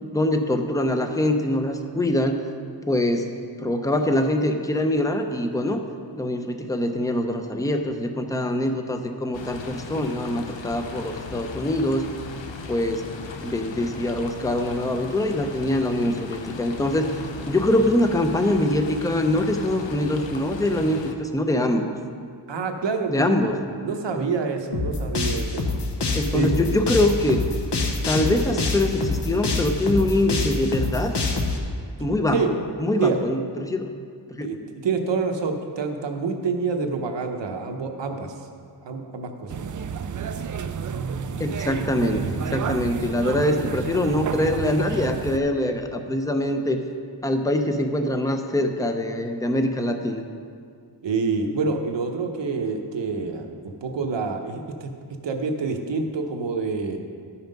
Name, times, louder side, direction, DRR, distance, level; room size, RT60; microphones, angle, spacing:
voice 1, 0.0-2.4 2.9-5.8 6.1-12.1 12.7-13.1 13.4-17.1 17.5-21.9 23.1-23.6 24.2-24.3 26.1-27.4 28.1-31.2 32.0-32.4 32.8-33.9 34.3-34.5 41.4-46.8 47.2-50.2, left 1 dB, 10° left, 5 dB, 0.6 m, -24 dB
sound 1, 9.3-21.1, left 4 dB, 90° left, 0.8 m, -37 dB
voice 2, 22.5-23.4 23.8-25.6 26.3-26.5 32.3-32.5 33.0-33.3 34.4-34.6 34.8-38.3 38.8-39.6 51.0-54.9 55.2-57.0, right 4 dB, 80° right, 4 dB, 1.0 m, -27 dB
sound 2, 24.7-31.6, left 3 dB, 65° left, 1.1 m, -25 dB
sound 3, 39.5-45.4, right 6 dB, 45° right, 0.4 m, -30 dB
11.5 x 5.7 x 5.3 m, 2.2 s
wide cardioid pair, 125°, 43 cm